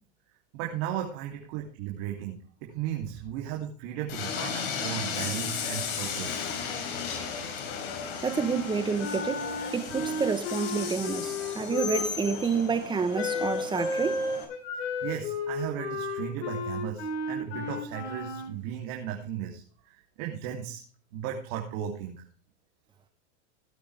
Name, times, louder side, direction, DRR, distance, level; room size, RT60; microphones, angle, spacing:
voice 1, 0.5-6.4 14.7-20.8 21.1-22.2, right 10 dB, 50° right, 3.0 m, -36 dB
Train, 4.1-14.4, left 6 dB, 55° left, 4.1 m, -35 dB
voice 2, 8.2-9.5 9.7-14.2, right 5 dB, 15° right, 1.0 m, -29 dB
Wind instrument woodwind instrument, 8.3-12.4 13.1-18.5, left 3 dB, 80° left, 4.9 m, -33 dB
17.5 x 8.6 x 3.4 m
supercardioid pair, 135°, 36 cm